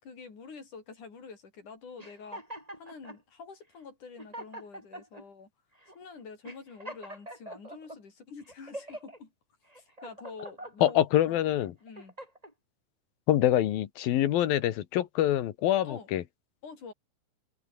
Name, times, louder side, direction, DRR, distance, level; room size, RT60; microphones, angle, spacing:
voice 1, 0.0-2.4 2.8-5.5 5.9-9.3 9.8-11.4 11.8-12.2 15.8-16.1 16.6-16.9, left 5 dB, 60° left, 6.6 m, -47 dB
sound 1, 2.0-3.2 3.8-3.9 4.2-5.2 5.8-6.0 6.4-8.0 8.5-9.2 9.7-11.0 11.5-12.5, right 1 dB, 10° right, 7.4 m, -44 dB
voice 2, 10.8-11.7 13.3-16.2, left 12 dB, 80° left, 3.2 m, -25 dB
omnidirectional pair, 4.1 m